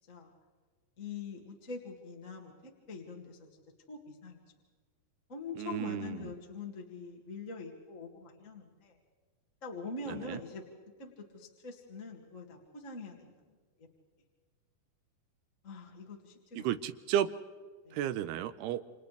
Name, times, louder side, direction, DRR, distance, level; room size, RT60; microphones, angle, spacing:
voice 1, 1.0-3.4 3.9-4.4 5.3-9.0 9.6-10.7 11.0-13.3 13.8-13.9 15.6-16.7 17.8-18.0, left 4 dB, 25° left, -2 dB, 1.9 m, -44 dB
voice 2, 5.6-6.3 10.1-10.4 16.6-17.3 17.9-18.8, right 11 dB, 85° right, 12 dB, 2.7 m, -33 dB
29.5 x 28.5 x 3.4 m, 1.5 s
omnidirectional pair, 4.6 m